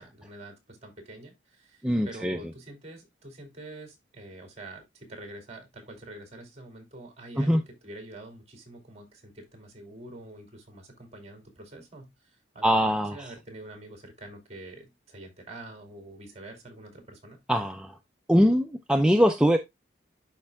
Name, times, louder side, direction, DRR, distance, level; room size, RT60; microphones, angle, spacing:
voice 1, 0.0-12.1 12.5-17.4, right 2 dB, 35° right, 2.5 m, -46 dB
voice 2, 1.8-2.4 7.4-7.6 12.6-13.3 17.5-18.0 18.3-19.6, equal, 5° right, 0.4 m, -22 dB
11.5 x 4.4 x 2.2 m
head